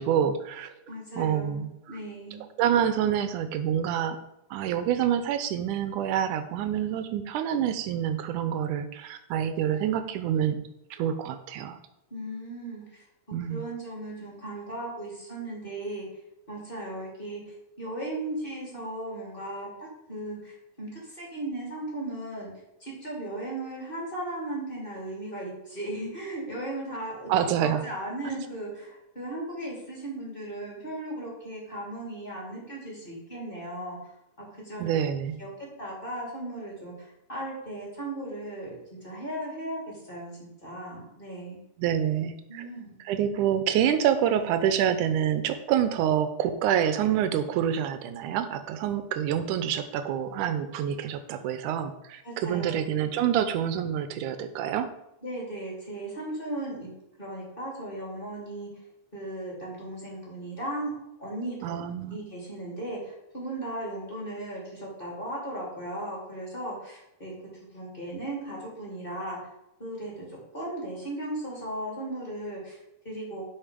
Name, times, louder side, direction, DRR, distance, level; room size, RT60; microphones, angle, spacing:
voice 1, 0.0-0.7 1.2-2.0 2.6-4.2 4.5-10.6 10.9-11.8 13.3-13.6 27.3-27.8 28.3-28.4 34.8-35.4 41.8-42.6 43.1-54.9 61.6-62.2, right 9 dB, 90° right, 10 dB, 2.3 m, -27 dB
voice 2, 0.9-2.4 12.1-13.0 13.5-16.1 16.5-19.7 20.1-22.5 22.8-34.1 34.4-35.0 35.4-38.7 39.0-41.6 42.5-43.0 52.2-52.9 55.2-56.9 57.2-58.7 59.1-67.3 67.7-69.4 69.8-73.4, right 1 dB, 15° left, -4 dB, 3.2 m, -37 dB
12.0 x 5.4 x 5.2 m, 0.87 s
omnidirectional pair, 3.5 m